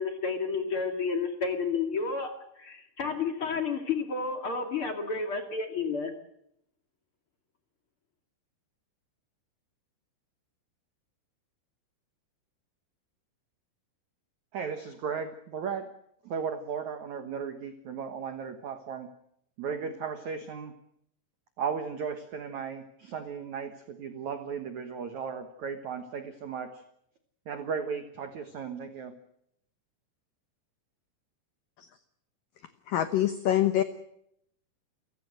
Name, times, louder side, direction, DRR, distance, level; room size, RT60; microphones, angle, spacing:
voice 1, 0.0-6.1, left 5 dB, 40° left, 6 dB, 2.0 m, -31 dB
voice 2, 14.5-15.9 16.2-19.1 19.6-20.7 21.6-26.8 27.5-29.2, right 6 dB, 85° right, 8 dB, 1.6 m, -36 dB
voice 3, 32.9-33.8, left 12 dB, 85° left, 10 dB, 1.9 m, -25 dB
29.0 x 16.5 x 7.7 m, 0.75 s
omnidirectional pair, 5.6 m